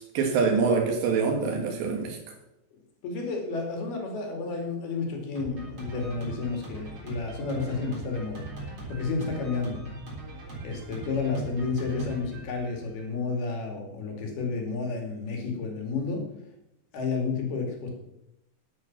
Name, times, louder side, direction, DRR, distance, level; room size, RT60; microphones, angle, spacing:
voice 1, 0.0-2.2, right 5 dB, 80° right, 3 dB, 4.0 m, -25 dB
voice 2, 2.7-8.5 8.9-10.0 10.6-16.2 16.9-17.9, left 4 dB, 65° left, 2 dB, 4.3 m, -31 dB
Drum kit, 5.4-13.2, right 2 dB, 30° right, 4.0 m, -40 dB
11.5 x 10.5 x 6.0 m, 0.85 s
omnidirectional pair, 5.0 m